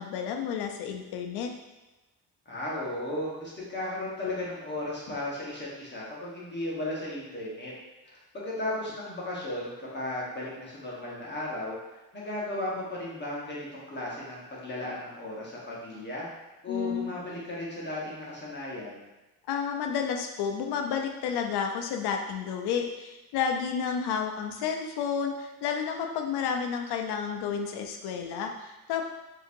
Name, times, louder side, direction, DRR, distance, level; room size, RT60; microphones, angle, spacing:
voice 1, 0.0-1.5 16.7-17.1 19.5-29.1, left 7 dB, 80° left, 3 dB, 0.5 m, -31 dB
voice 2, 2.5-7.7 8.0-11.8 12.1-16.3 16.6-19.0, left 1 dB, 30° left, -5 dB, 1.0 m, -35 dB
3.8 x 2.8 x 2.6 m, 1.1 s
cardioid pair, 95°, 38 cm